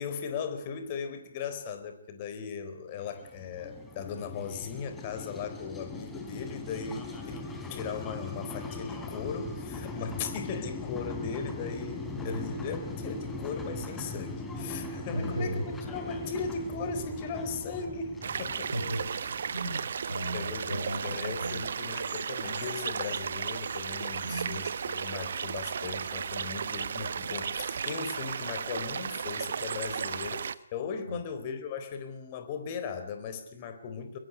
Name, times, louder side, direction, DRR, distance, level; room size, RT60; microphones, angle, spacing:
voice 1, 0.0-15.6 15.9-18.7 20.3-34.2, left 5 dB, 30° left, 9 dB, 4.1 m, -38 dB
sound 1, 3.0-19.6, left 2 dB, 10° left, 3.8 m, -40 dB
voice 2, 15.1-15.7 18.7-19.0 19.3-21.6 24.2-24.6 31.1-31.2, right 1 dB, 85° right, 2 dB, 6.4 m, -35 dB
sound 2, 18.2-30.5, right 6 dB, 50° right, 1.1 m, -34 dB
23.0 x 21.5 x 9.8 m, 0.69 s
figure-of-eight pair, 140°, 0 cm